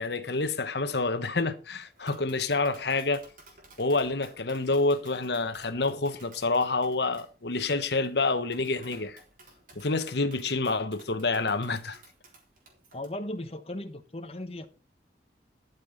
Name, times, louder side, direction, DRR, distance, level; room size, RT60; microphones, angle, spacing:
voice 1, 0.0-3.2 3.8-9.2 9.8-12.0, left 3 dB, 70° left, 1.1 m, -28 dB
Tap, 1.8-13.1, right 2 dB, 45° right, 3.9 m, -55 dB
voice 2, 12.9-14.7, left 1 dB, 35° left, 1.0 m, -37 dB
12.5 x 6.8 x 5.4 m
head